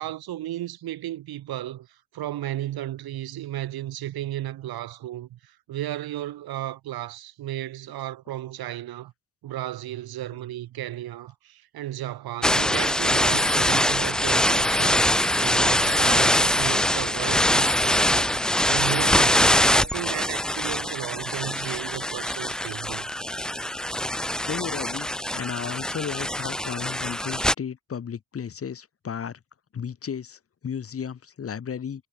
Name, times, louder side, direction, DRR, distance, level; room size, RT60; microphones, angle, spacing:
voice 1, 0.0-9.1 9.4-15.1 15.4-23.0, right 13 dB, 80° right, 4.0 m, -34 dB
sound 1, 12.4-27.5, left 1 dB, ahead, 0.4 m, -23 dB
voice 2, 24.5-29.4 29.7-32.1, left 7 dB, 40° left, 1.4 m, -34 dB
cardioid pair, 110°, 36 cm